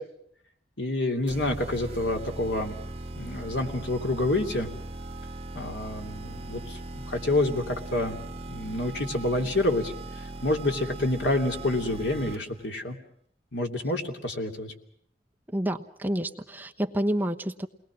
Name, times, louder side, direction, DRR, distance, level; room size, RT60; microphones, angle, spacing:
voice 1, 0.8-2.8 3.1-4.7 5.5-8.2 8.5-13.0 13.5-14.7, left 2 dB, 80° left, 3 dB, 3.0 m, -28 dB
sound 1, 1.3-12.7, right 2 dB, 35° right, 1.4 m, -39 dB
voice 2, 15.5-17.7, right 1 dB, 10° right, 4 dB, 1.0 m, -29 dB
29.5 x 20.5 x 6.2 m, 0.68 s
head